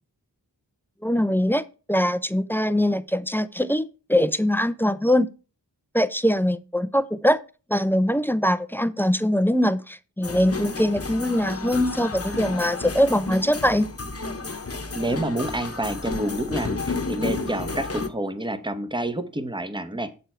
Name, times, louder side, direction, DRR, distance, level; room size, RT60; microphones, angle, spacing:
voice 1, 1.0-5.3 5.9-7.4 7.7-13.9, equal, 5° left, 0.5 m, -22 dB
sound 1, 10.2-18.1, left 3 dB, 35° left, 1.1 m, -32 dB
voice 2, 14.9-20.1, right 1 dB, 10° right, 1.0 m, -28 dB
8.1 x 6.8 x 4.4 m
wide cardioid pair, 70°, 40 cm